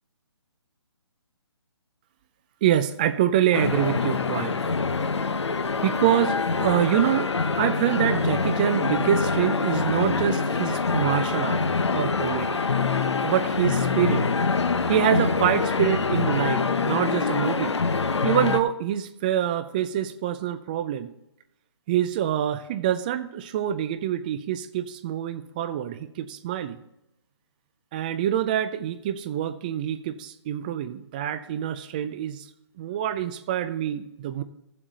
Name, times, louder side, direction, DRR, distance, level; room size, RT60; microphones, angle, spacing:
voice 1, 2.6-4.6 5.8-7.3 7.6-11.7 11.9-12.6 13.2-14.3 14.9-17.8 18.2-21.1 21.9-26.8 27.9-32.5 32.8-34.4, right 11 dB, 20° right, 12 dB, 0.4 m, -26 dB
sound 1, 3.5-18.6, left 4 dB, 85° left, 0.8 m, -25 dB
14.0 x 7.5 x 4.0 m, 0.85 s
hypercardioid pair, 155°, 14 cm